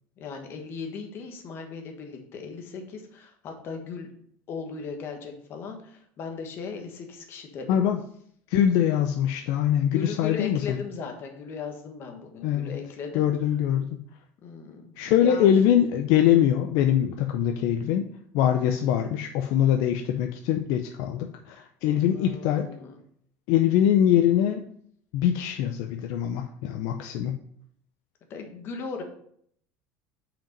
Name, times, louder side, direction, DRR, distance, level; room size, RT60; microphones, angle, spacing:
voice 1, 0.2-4.1 4.5-7.8 9.9-13.3 14.4-15.6 21.9-23.0 28.3-29.0, left 5 dB, 40° left, 4 dB, 1.4 m, -38 dB
voice 2, 7.7-8.0 8.5-10.8 12.4-12.7 13.1-13.9 15.0-18.1 18.3-22.7 23.5-24.6 25.1-27.4, left 10 dB, 65° left, 5 dB, 0.6 m, -23 dB
5.8 x 5.1 x 5.2 m, 0.65 s
cardioid pair, 155°, 6 cm